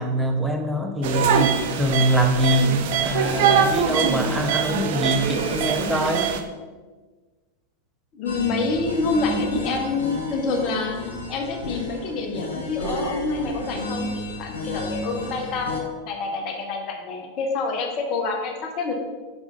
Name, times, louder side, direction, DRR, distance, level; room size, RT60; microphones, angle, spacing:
voice 1, 0.0-6.3, equal, 5° right, 3 dB, 0.7 m, -23 dB
sound 1, 1.0-6.4, right 7 dB, 50° right, 0.5 m, -23 dB
voice 2, 8.1-18.9, left 3 dB, 40° left, 2 dB, 0.9 m, -27 dB
sound 2, 8.3-15.8, left 2 dB, 70° left, 1.3 m, -32 dB
5.4 x 4.7 x 3.9 m, 1.4 s
figure-of-eight pair, 90°, 0 cm